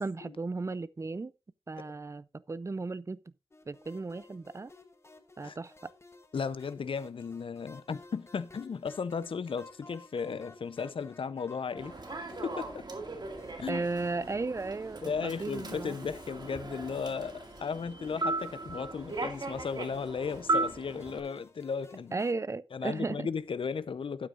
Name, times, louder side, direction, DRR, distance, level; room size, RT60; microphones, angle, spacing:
voice 1, 0.0-1.3 1.7-3.2 3.7-4.7 5.4-5.9 13.7-16.0 22.1-23.3, right 3 dB, 35° right, 0.5 m, -35 dB
sound 1, 3.5-22.3, left 2 dB, 30° left, 1.2 m, -55 dB
voice 2, 6.3-11.9 12.4-12.9 13.6-13.8 15.0-22.1 22.7-24.3, left 5 dB, 75° left, 0.6 m, -35 dB
Human voice / Subway metro underground, 11.8-21.2, right 2 dB, 55° right, 2.1 m, -37 dB
12.5 x 9.2 x 2.5 m
wide cardioid pair, 110°, 9 cm